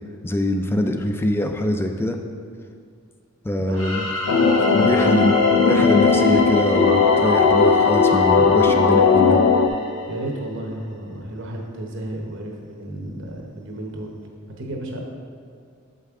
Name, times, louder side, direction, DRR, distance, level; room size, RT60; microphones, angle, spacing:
voice 1, 0.2-2.2 3.4-4.0 4.7-9.4, left 1 dB, 10° left, 5 dB, 0.4 m, -23 dB
sound 1, 3.7-10.4, left 2 dB, 65° left, 1.9 m, -30 dB
voice 2, 3.7-5.3 10.1-14.2 14.6-15.0, right 1 dB, 60° right, 0 dB, 1.0 m, -33 dB
sound 2, 4.3-9.7, left 5 dB, 80° left, 0.5 m, -17 dB
7.6 x 5.4 x 3.7 m, 2.2 s
head